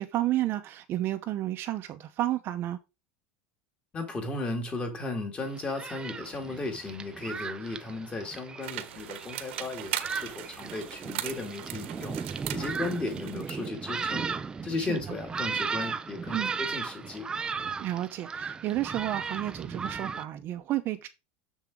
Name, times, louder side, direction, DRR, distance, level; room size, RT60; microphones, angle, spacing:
voice 1, 0.0-2.8 14.8-15.0 16.3-16.5 17.8-21.1, right 14 dB, 35° right, 0.8 m, -31 dB
voice 2, 3.9-12.2 12.5-14.3 14.6-17.3, left 3 dB, 20° left, 2.1 m, -35 dB
Thunderstorm, 5.4-20.2, right 5 dB, 15° right, 0.5 m, -36 dB
sound 1, 8.6-13.7, right 14 dB, 80° right, 1.3 m, -39 dB
7.4 x 7.0 x 3.7 m
supercardioid pair, 160°, 6 cm